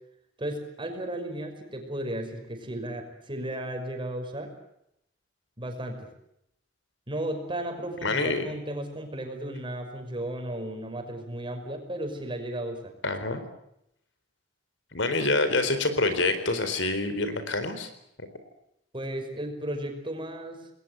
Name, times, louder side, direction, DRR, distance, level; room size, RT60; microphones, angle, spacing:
voice 1, 0.4-4.5 5.6-6.1 7.1-12.9 18.9-20.7, right 1 dB, 25° right, 5 dB, 5.6 m, -34 dB
voice 2, 8.0-8.4 13.0-13.4 14.9-17.9, left 2 dB, 75° left, 10 dB, 4.2 m, -26 dB
28.5 x 21.0 x 8.1 m, 0.79 s
head